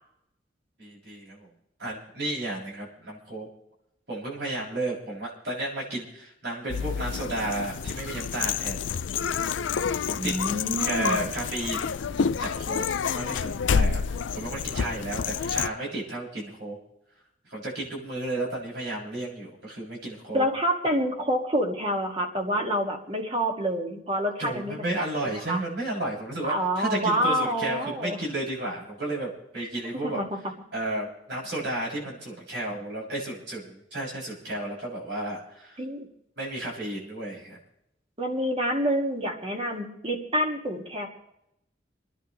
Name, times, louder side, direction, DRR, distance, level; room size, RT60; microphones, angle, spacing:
voice 1, 0.8-1.5 1.8-3.5 4.1-8.8 10.1-10.3 10.8-11.9 12.4-12.9 13.1-16.8 17.5-20.5 24.4-30.2 30.7-35.8 36.4-37.6, right 1 dB, 70° right, -4 dB, 7.4 m, -33 dB
sound 1, 6.7-15.7, left 6 dB, 90° left, 0.5 m, -28 dB
voice 2, 10.2-11.3 20.3-25.6 26.4-28.2 29.6-29.7 30.0-30.3 35.8-36.1 38.2-41.1, equal, 30° right, 2 dB, 2.4 m, -27 dB
28.5 x 11.0 x 3.3 m, 0.81 s
head